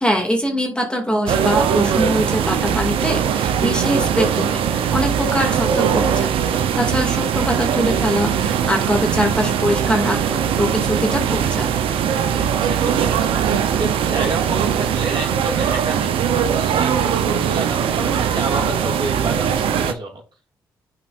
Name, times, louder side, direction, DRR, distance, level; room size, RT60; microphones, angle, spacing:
voice 1, 0.0-6.3 6.7-11.7, equal, 10° left, 2 dB, 2.4 m, -23 dB
sound 1, 1.3-19.9, right 8 dB, 80° right, 0.7 m, -20 dB
voice 2, 5.2-5.5 12.2-13.4 13.8-20.2, right 2 dB, 55° right, -1 dB, 3.0 m, -29 dB
11.0 x 4.6 x 2.6 m, 0.35 s
supercardioid pair, 45°, 9 cm